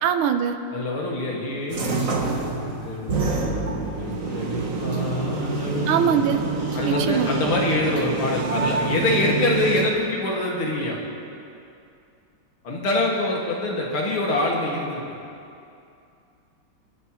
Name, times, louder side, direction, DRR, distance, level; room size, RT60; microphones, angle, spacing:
voice 1, 0.0-0.6 5.9-6.4 6.8-7.3, right 8 dB, 85° right, 7 dB, 1.7 m, -22 dB
voice 2, 0.7-6.2 6.7-11.0 12.6-15.0, left 2 dB, 80° left, -3 dB, 2.9 m, -26 dB
sound 1, 1.7-9.9, right 3 dB, 45° right, 1.3 m, -27 dB
27.5 x 11.0 x 3.1 m, 2.6 s
omnidirectional pair, 2.3 m